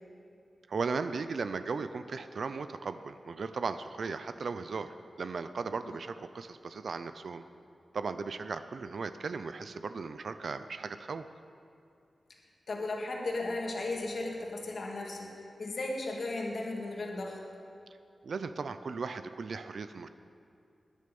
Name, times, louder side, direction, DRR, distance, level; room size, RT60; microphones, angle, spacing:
voice 1, 0.7-7.4 7.9-11.3 18.2-20.1, right 4 dB, 65° right, 11 dB, 0.5 m, -37 dB
voice 2, 12.7-17.4, left 2 dB, 60° left, -1 dB, 2.2 m, -35 dB
20.0 x 9.8 x 5.4 m, 2.5 s
wide cardioid pair, 130°, 0 cm